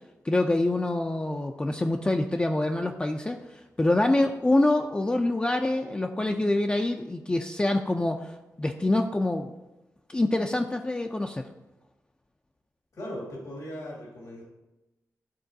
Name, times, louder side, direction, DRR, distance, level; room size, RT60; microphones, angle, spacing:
voice 1, 0.2-9.5 10.1-11.5, left 2 dB, 15° left, 3 dB, 0.4 m, -26 dB
voice 2, 12.9-14.4, equal, 85° left, -3 dB, 2.1 m, -38 dB
11.0 x 3.8 x 2.7 m, 1.0 s
cardioid pair, 75°, 6 cm